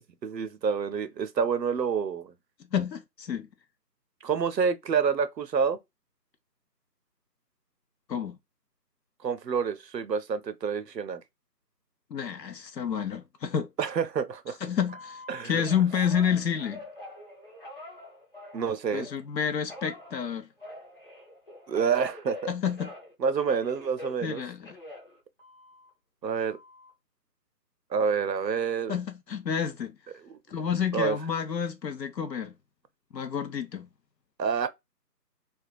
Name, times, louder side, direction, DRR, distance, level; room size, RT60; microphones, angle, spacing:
voice 1, 0.2-2.3 4.2-5.8 9.2-11.2 13.8-14.6 15.3-15.6 18.5-19.1 21.7-22.4 23.2-24.4 26.2-26.6 27.9-28.9 30.2-30.4 30.9-31.2 34.4-34.7, right 6 dB, 80° right, 0.7 m, -28 dB
voice 2, 2.7-3.5 8.1-8.4 12.1-13.7 14.6-16.8 18.9-20.5 22.5-22.9 24.2-24.8 28.9-29.9 30.5-32.5 33.1-33.9, left 7 dB, 80° left, 0.7 m, -29 dB
Telephone, 14.9-19.2 19.7-23.1 23.4-25.9 26.4-26.9, left 1 dB, 35° left, 1.0 m, -45 dB
3.3 x 2.3 x 2.3 m
figure-of-eight pair, 175°, 49 cm